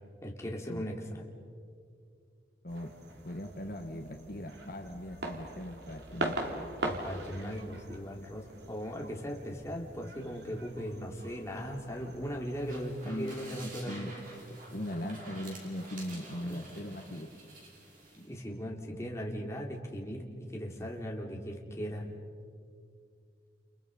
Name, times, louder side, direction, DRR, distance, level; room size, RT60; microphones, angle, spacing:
voice 1, 0.2-1.2 6.8-14.1 16.4-16.6 18.2-22.1, equal, 15° left, -1 dB, 3.1 m, -38 dB
sound 1, 2.7-12.8, right 1 dB, 70° right, 3.0 m, -42 dB
voice 2, 3.2-6.6 13.0-13.3 13.6-14.1 14.7-17.3, equal, 55° left, 3 dB, 1.6 m, -39 dB
sound 2, 12.5-18.3, right 2 dB, 50° right, 5.9 m, -50 dB
30.0 x 29.5 x 5.4 m, 2.2 s
head